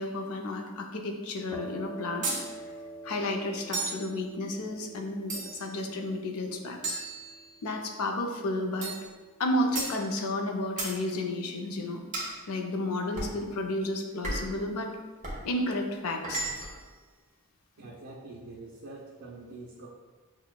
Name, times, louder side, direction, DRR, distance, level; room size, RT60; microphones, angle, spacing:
voice 1, 0.0-2.3 3.0-7.0 7.6-8.9 9.4-12.0 12.5-14.9 15.4-16.5, left 1 dB, 70° left, 3 dB, 0.5 m, -32 dB
sound 1, 1.5-9.0, right 1 dB, 10° left, 0.4 m, -46 dB
sound 2, 2.2-2.5 3.7-4.1 5.3-5.7 6.8-7.7 8.8-9.1 9.7-10.0 10.8-11.0 12.1-12.4 13.2-13.4 14.2-14.6 15.2-15.4 16.2-16.8, right 2 dB, 35° right, 0.9 m, -34 dB
voice 2, 17.8-19.9, right 2 dB, 70° right, -5 dB, 0.6 m, -45 dB
5.8 x 2.1 x 2.2 m, 1.3 s
head